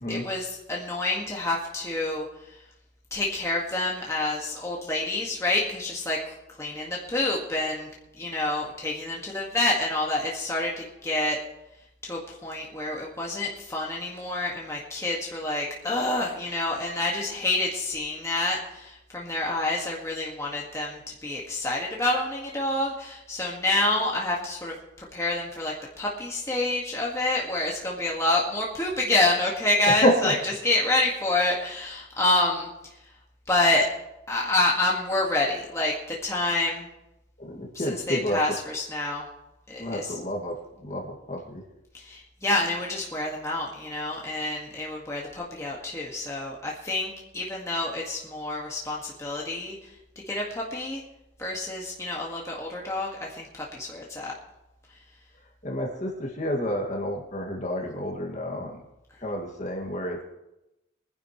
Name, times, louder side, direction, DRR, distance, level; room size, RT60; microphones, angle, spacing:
voice 1, 0.1-2.6 3.1-7.9 8.2-11.4 12.0-30.3 30.6-32.7 33.5-33.9 34.3-36.9 37.7-39.2 39.7-40.1 41.9-49.8 50.3-51.0 51.4-54.3, left 2 dB, 15° left, -3 dB, 1.7 m, -28 dB
voice 2, 29.9-30.3 37.4-38.4 39.8-40.6 40.8-41.6 55.6-58.8 59.2-60.2, equal, 40° left, 0 dB, 2.0 m, -29 dB
23.0 x 10.5 x 3.1 m, 0.91 s
head